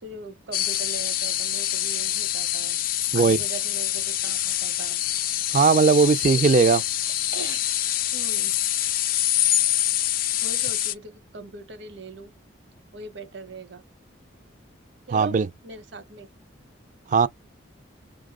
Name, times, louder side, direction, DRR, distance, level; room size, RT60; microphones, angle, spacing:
voice 1, 0.0-2.8 3.1-5.0 7.3-7.6 8.1-8.5 10.4-12.3 12.9-13.8 15.1-15.4 15.6-16.3, right 4 dB, 60° right, 0.8 m, -40 dB
sound 1, 0.5-10.9, left 12 dB, 45° left, 0.3 m, -25 dB
voice 2, 5.5-6.8 15.1-15.5 17.1-17.3, right 5 dB, 40° right, 0.3 m, -18 dB
5.2 x 2.0 x 3.6 m
head